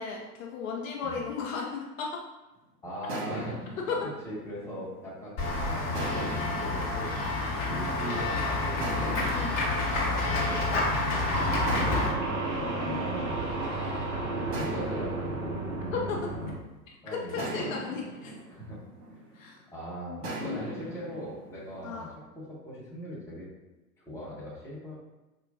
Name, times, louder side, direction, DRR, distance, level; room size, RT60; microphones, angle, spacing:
voice 1, 0.0-2.2 3.9-4.0 9.3-9.6 12.5-13.4 15.9-16.3 17.1-18.3 19.3-19.6 20.1-20.8 21.8-22.1, left 5 dB, 55° left, -1 dB, 0.6 m, -35 dB
voice 2, 2.8-3.6 4.2-8.9 9.3-12.0 12.6-15.8 16.3-16.5 17.0-17.5 18.5-18.8 19.1-19.2 19.7-20.3 20.5-23.5 24.1-24.9, equal, 5° left, -7 dB, 0.8 m, -41 dB
sound 1, 3.1-5.3 5.9-8.2 8.8-11.1 11.7-13.9 14.5-16.8 17.4-19.6 20.2-22.1, right 1 dB, 50° right, 1.1 m, -40 dB
Run / Walk footsteps / Bell, 5.4-12.1, left 2 dB, 30° left, 0.9 m, -29 dB
sound 2, 11.3-16.6, right 2 dB, 25° right, 0.8 m, -32 dB
4.3 x 2.2 x 2.5 m, 1.0 s
figure-of-eight pair, 105°, 50 cm